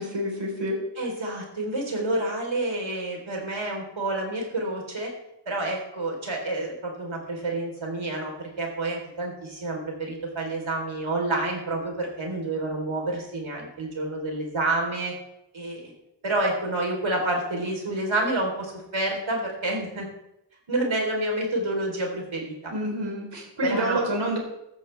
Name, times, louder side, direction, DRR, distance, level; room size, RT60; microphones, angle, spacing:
voice 1, 0.1-0.8 22.7-24.4, right 1 dB, 65° right, 0 dB, 4.3 m, -28 dB
voice 2, 1.0-5.1 5.5-15.1 15.5-15.9 16.2-20.1 20.7-22.7 23.6-24.0, right 2 dB, 90° right, 1 dB, 4.0 m, -28 dB
14.5 x 14.0 x 3.5 m, 0.85 s
wide cardioid pair, 75°, 45 cm